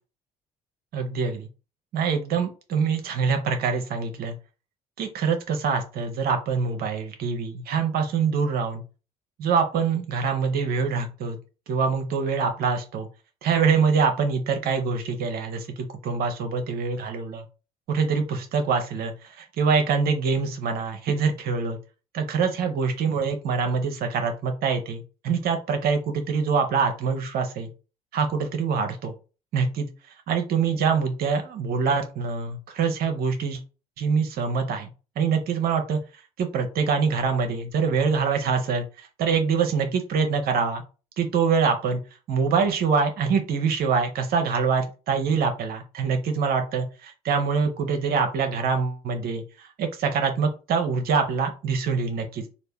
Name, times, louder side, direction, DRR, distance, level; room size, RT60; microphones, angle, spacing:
voice 1, 0.9-1.5 1.9-4.4 5.0-8.8 9.4-11.4 11.7-13.1 13.4-15.7 16.0-17.4 17.9-21.8 22.1-27.7 28.1-29.1 29.5-29.9 30.3-33.6 34.0-34.9 35.2-36.0 36.4-40.8 41.2-42.0 42.3-52.4, right 5 dB, 55° right, 6 dB, 0.7 m, -25 dB
3.2 x 2.5 x 3.4 m, 0.32 s
hypercardioid pair, 55°, 19 cm